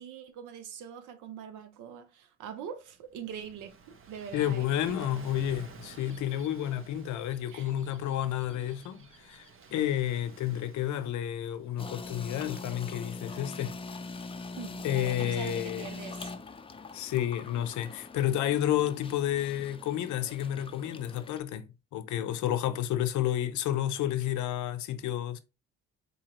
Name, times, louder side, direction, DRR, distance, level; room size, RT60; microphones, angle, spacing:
voice 1, 0.0-5.2 7.5-7.7 14.6-16.3, right 8 dB, 85° right, 0.7 m, -43 dB
Gull seagull / Waves surf, 2.9-13.4, right 5 dB, 45° right, 0.7 m, -53 dB
voice 2, 4.3-13.7 14.8-15.9 16.9-25.4, left 11 dB, 75° left, 0.6 m, -31 dB
sound 1, 11.8-21.4, left 3 dB, 20° left, 0.4 m, -43 dB
4.0 x 2.8 x 2.9 m
cardioid pair, 90°, 30 cm